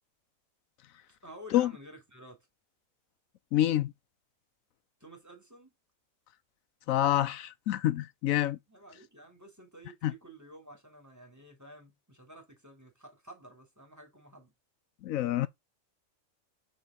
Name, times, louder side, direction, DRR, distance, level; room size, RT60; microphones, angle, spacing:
voice 1, 1.1-2.5 5.0-5.7 8.7-14.5, right 1 dB, 10° right, 3.3 m, -51 dB
voice 2, 3.5-3.9 6.9-8.6 10.0-10.1 15.0-15.5, left 13 dB, 85° left, 1.0 m, -27 dB
7.6 x 4.6 x 3.9 m
omnidirectional pair, 1.4 m